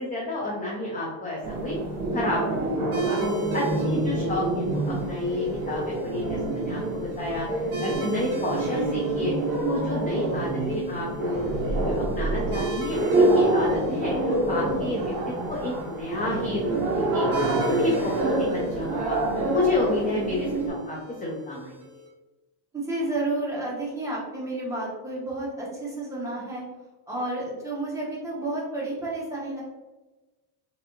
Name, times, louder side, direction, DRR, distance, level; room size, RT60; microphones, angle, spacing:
voice 1, 0.0-1.7 2.1-3.2 3.5-7.5 7.8-9.3 9.7-15.1 15.5-17.3 17.6-18.5 18.7-19.2 19.5-21.9, left 2 dB, 20° left, -3 dB, 0.4 m, -30 dB
sound 1, 1.4-20.7, right 2 dB, 50° right, 1.1 m, -27 dB
sound 2, 2.9-22.1, right 1 dB, 30° right, 1.3 m, -40 dB
voice 2, 22.7-26.6 27.1-29.6, right 2 dB, 5° right, -6 dB, 0.9 m, -31 dB
3.2 x 2.7 x 2.7 m, 1.1 s
cardioid pair, 140°, 46 cm